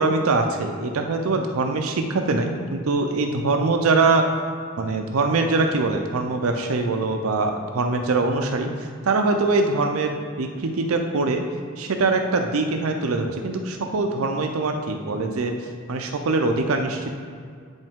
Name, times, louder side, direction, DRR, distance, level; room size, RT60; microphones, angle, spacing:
voice 1, 0.0-4.2 4.8-8.7 9.1-11.4 11.8-15.5 15.9-17.1, right 3 dB, 90° right, 5 dB, 0.6 m, -23 dB
8.1 x 5.3 x 3.6 m, 2.1 s
head